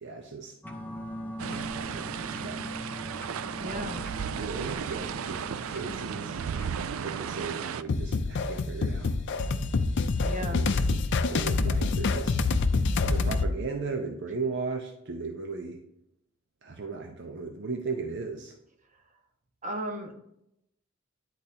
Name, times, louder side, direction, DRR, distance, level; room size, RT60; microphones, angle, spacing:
voice 1, 0.0-0.5 1.9-2.8 3.6-4.0 4.3-6.4 7.0-9.1 10.2-10.7 11.3-12.4 13.0-15.8 16.6-18.5, right 4 dB, 60° right, 2 dB, 0.8 m, -36 dB
sound 1, 0.6-7.2, equal, 10° left, 0.7 m, -41 dB
sound 2, 1.4-7.8, right 7 dB, 85° right, 0.4 m, -35 dB
voice 2, 3.6-4.0 10.2-10.6 19.6-20.1, right 1 dB, 40° right, 2 dB, 1.2 m, -35 dB
sound 3, 7.9-13.5, left 3 dB, 60° left, 0.5 m, -26 dB
10.5 x 4.1 x 2.8 m, 0.79 s
head